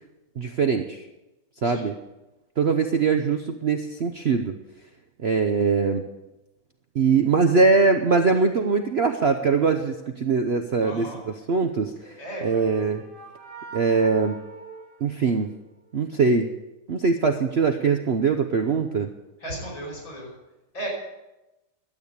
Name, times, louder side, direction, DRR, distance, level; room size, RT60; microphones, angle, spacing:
voice 1, 0.4-1.1 1.6-2.0 2.6-4.5 5.2-6.0 6.9-13.0 13.7-14.4 15.0-15.5 15.9-16.5 16.9-19.1, right 4 dB, 65° right, 6 dB, 0.6 m, -22 dB
voice 2, 10.8-11.2 12.2-12.6 19.4-20.3 20.7-20.9, right 1 dB, 85° left, -3 dB, 6.5 m, -35 dB
sound 1, 11.9-15.8, right 4 dB, 25° right, 3.1 m, -42 dB
12.5 x 8.7 x 8.2 m, 1.0 s
omnidirectional pair, 2.0 m